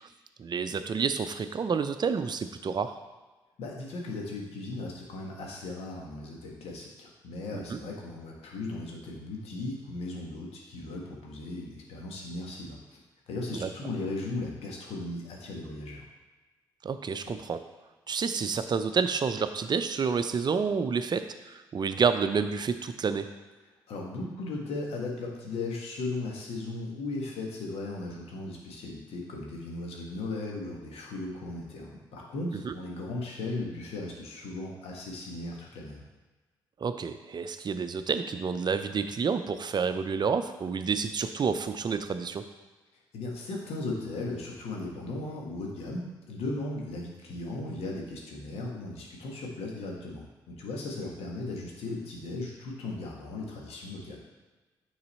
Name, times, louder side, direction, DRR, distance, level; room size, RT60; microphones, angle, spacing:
voice 1, 0.4-2.9 7.5-7.8 13.5-13.7 16.8-17.6 18.1-23.3 32.6-32.7 36.8-42.4, right 5 dB, 40° right, 10 dB, 0.6 m, -29 dB
voice 2, 3.6-13.0 13.3-16.0 23.9-36.0 43.1-54.2, left 2 dB, 60° left, -1 dB, 1.6 m, -37 dB
9.6 x 4.0 x 4.3 m, 1.2 s
figure-of-eight pair, 40°, 12 cm